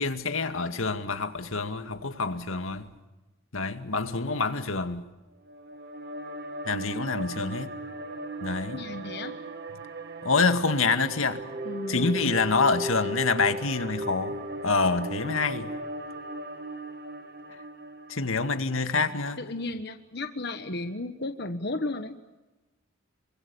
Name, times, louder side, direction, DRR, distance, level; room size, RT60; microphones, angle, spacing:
voice 1, 0.0-2.9 3.5-5.0 6.7-7.7 8.4-8.8 10.2-11.4 11.9-14.4 14.6-15.7 18.1-19.4, left 4 dB, 80° left, 2.1 m, -26 dB
sound 1, 5.4-18.8, right 1 dB, 50° right, 2.2 m, -37 dB
voice 2, 8.7-9.4 11.6-12.3 19.4-22.2, left 2 dB, 50° left, 1.3 m, -34 dB
27.5 x 25.0 x 7.1 m
head